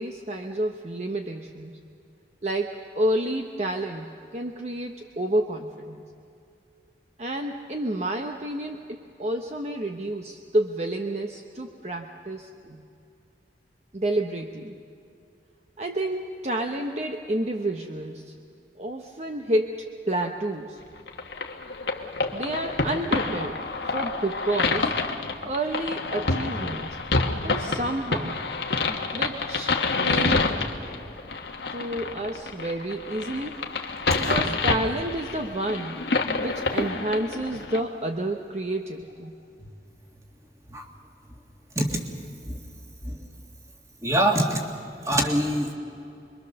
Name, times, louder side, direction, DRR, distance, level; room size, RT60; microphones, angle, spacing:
voice 1, 0.0-1.8 2.4-6.1 7.2-12.8 13.9-14.7 15.8-18.3 18.8-20.8 22.3-25.0 25.4-27.0 27.4-28.4 29.1-30.5 31.7-33.7 34.1-36.0 36.4-39.3, right 1 dB, 40° right, 3 dB, 0.9 m, -30 dB
sound 1, 21.1-37.8, left 3 dB, 80° left, 1.5 m, -28 dB
voice 2, 44.0-44.6 45.1-45.7, right 1 dB, 15° right, 2 dB, 2.0 m, -24 dB
26.5 x 22.5 x 6.8 m, 2.6 s
head